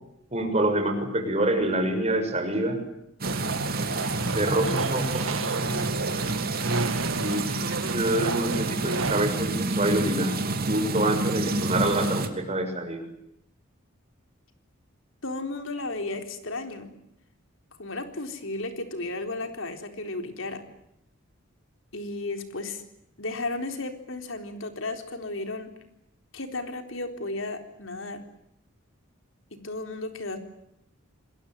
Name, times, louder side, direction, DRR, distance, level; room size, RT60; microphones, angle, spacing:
voice 1, 0.3-2.8 4.3-5.6 7.2-7.5 7.9-10.3 10.7-13.0, right 1 dB, 30° right, 6 dB, 6.6 m, -26 dB
sound 1, 3.2-12.3, right 2 dB, 50° right, 2.9 m, -29 dB
sound 2, 3.2-9.2, right 3 dB, 90° right, 2.5 m, -31 dB
voice 2, 15.2-16.9 17.8-20.6 21.9-22.8 23.2-25.7 26.3-28.2 29.5-30.4, left 2 dB, 75° left, 6 dB, 4.0 m, -34 dB
27.0 x 22.0 x 9.4 m, 0.79 s
head